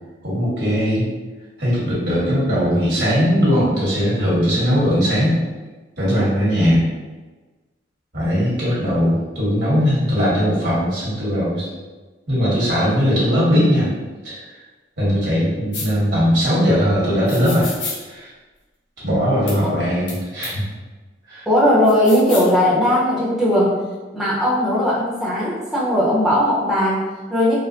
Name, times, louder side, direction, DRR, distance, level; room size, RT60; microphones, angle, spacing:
voice 1, 0.2-1.0 1.6-5.4 6.0-6.8 8.1-11.7 12.3-13.9 14.2-14.4 15.0-17.7 18.0-18.3 19.0-20.6 21.3-21.4, equal, 70° right, -8 dB, 1.5 m, -19 dB
sound 1, 15.7-15.9 17.3-18.0 19.5-19.6 20.1-20.2 20.4-20.5 21.9-22.5, left 3 dB, 80° left, 0.9 m, -30 dB
voice 2, 21.5-23.8 24.1-27.6, left 1 dB, ahead, -9 dB, 0.7 m, -18 dB
4.2 x 2.1 x 2.5 m, 1.3 s
head